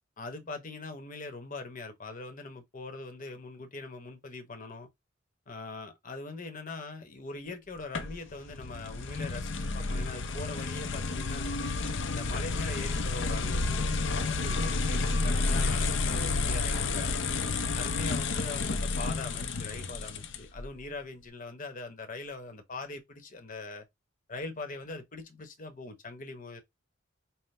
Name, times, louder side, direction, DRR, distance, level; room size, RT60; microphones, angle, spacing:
voice 1, 0.2-4.9 5.5-11.5 12.1-17.1 17.7-23.9 24.3-26.6, left 3 dB, 40° left, 1.0 m, -42 dB
sound 1, 7.9-20.6, left 3 dB, 60° left, 0.6 m, -30 dB
5.6 x 2.1 x 3.3 m
head